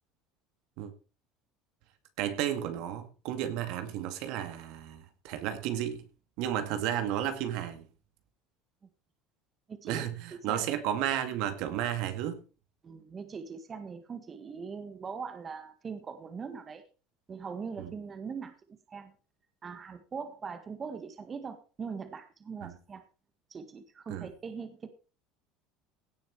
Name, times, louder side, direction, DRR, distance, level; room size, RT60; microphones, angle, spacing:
voice 1, 2.2-6.1 6.4-7.9 9.8-12.4 17.8-17.9 22.6-22.7 24.1-24.3, right 11 dB, 70° right, 2.1 m, -33 dB
voice 2, 9.7-10.1 10.3-10.6 12.8-16.8 17.3-18.5 18.9-19.1 19.6-23.0 23.5-24.9, right 5 dB, 30° right, 1.7 m, -41 dB
17.0 x 6.4 x 4.7 m
supercardioid pair, 110°, 0 cm